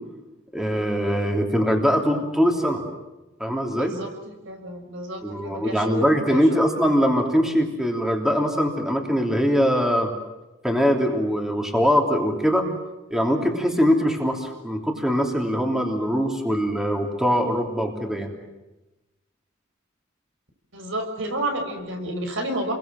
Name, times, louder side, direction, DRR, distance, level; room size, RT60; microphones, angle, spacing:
voice 1, 0.5-2.8 3.4-4.0 5.2-10.1 10.6-12.7 13.1-18.3, equal, ahead, 2 dB, 3.1 m, -22 dB
voice 2, 3.7-6.7 20.7-22.7, right 1 dB, 65° right, 5 dB, 6.3 m, -31 dB
30.0 x 22.5 x 7.7 m, 1.0 s
head